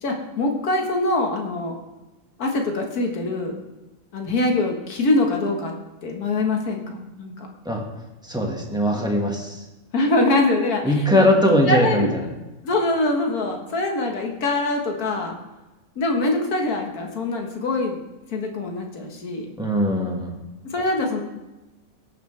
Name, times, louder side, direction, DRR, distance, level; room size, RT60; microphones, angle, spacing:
voice 1, 0.0-1.8 2.4-3.5 4.1-5.7 6.0-7.5 9.9-11.3 11.5-12.1 12.6-15.4 16.0-18.0 18.3-19.5 20.6-21.2, left 2 dB, 90° left, 2 dB, 1.9 m, -23 dB
voice 2, 8.2-9.6 10.8-12.1 19.6-20.3, equal, 5° right, 0 dB, 1.5 m, -20 dB
17.0 x 6.7 x 3.3 m, 1.0 s
omnidirectional pair, 1.5 m